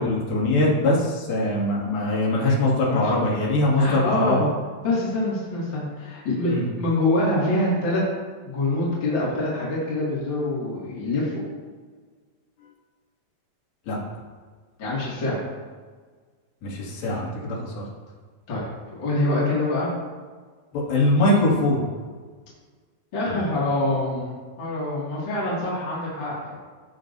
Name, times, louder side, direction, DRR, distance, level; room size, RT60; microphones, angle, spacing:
voice 1, 0.0-4.5 6.5-6.6 13.9-14.0 16.6-17.8 20.7-21.8, left 2 dB, 70° left, -5 dB, 3.9 m, -22 dB
voice 2, 2.8-3.2 3.8-4.4 4.8-8.0 8.4-11.4 14.8-15.4 18.5-18.7 19.0-19.9 23.1-26.6, left 2 dB, 35° left, -7 dB, 2.3 m, -25 dB
16.0 x 6.3 x 2.6 m, 1.5 s
omnidirectional pair, 4.5 m